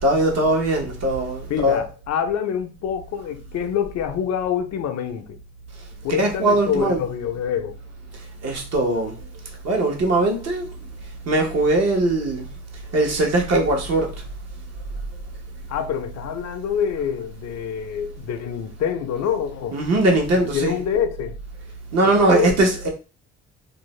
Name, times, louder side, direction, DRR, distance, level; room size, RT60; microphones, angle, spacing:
voice 1, 0.0-1.9 6.1-7.1 8.4-9.2 9.6-10.7 11.2-12.5 12.9-14.2 19.7-20.8 21.9-22.9, right 2 dB, 55° right, 0.9 m, -20 dB
voice 2, 1.5-5.4 6.0-7.8 15.7-19.8 20.3-21.4 22.0-22.6, left 8 dB, 60° left, 0.5 m, -26 dB
2.5 x 2.0 x 3.1 m
cardioid pair, 90°, 30 cm